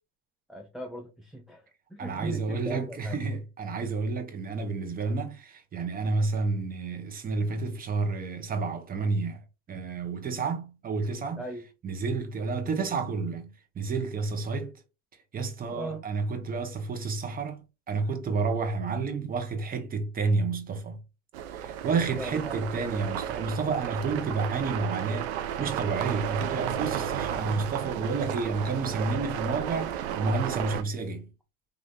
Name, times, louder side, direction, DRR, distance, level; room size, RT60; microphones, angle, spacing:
voice 1, 0.5-1.6 1.9-3.2 11.4-11.7 15.7-16.0 22.2-22.7, right 1 dB, ahead, 0.4 m, -38 dB
voice 2, 2.0-11.4 11.8-14.8 15.3-21.0 21.5-31.3, right 4 dB, 25° right, 0.8 m, -30 dB
sound 1, 21.3-30.8, right 10 dB, 80° right, 0.5 m, -33 dB
3.1 x 2.5 x 2.6 m
hypercardioid pair, 90°, 32 cm